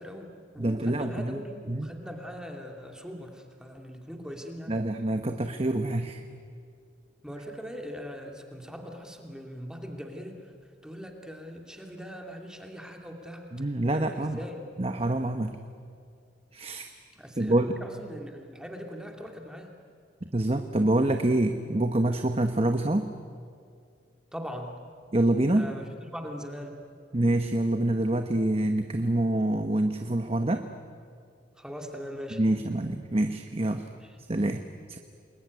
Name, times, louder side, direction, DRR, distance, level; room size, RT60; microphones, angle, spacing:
voice 1, 0.0-4.7 7.2-10.5 10.8-13.5 13.9-14.5 17.2-19.7 24.3-24.8 25.6-26.8 31.6-32.4 33.9-34.1, equal, 5° right, 2 dB, 2.6 m, -41 dB
voice 2, 0.6-1.4 1.7-1.9 4.7-6.2 13.5-14.4 14.8-15.6 16.5-16.9 17.4-17.8 20.3-23.1 25.1-25.7 27.1-30.6 32.3-33.8 34.3-34.6 34.9-35.0, right 1 dB, 35° right, 7 dB, 1.1 m, -26 dB
28.5 x 21.0 x 9.5 m, 2.3 s
head